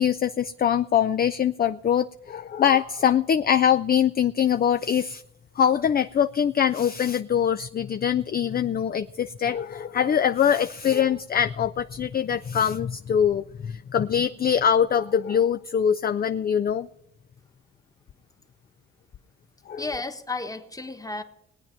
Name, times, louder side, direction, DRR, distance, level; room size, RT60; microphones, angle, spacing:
voice 1, 0.0-5.2 5.6-16.9 19.7-19.8, left 8 dB, 30° left, 0.4 m, -23 dB
voice 2, 19.8-21.2, left 3 dB, 10° left, 1.2 m, -33 dB
20.0 x 8.9 x 4.4 m
cardioid pair, 90°, 30 cm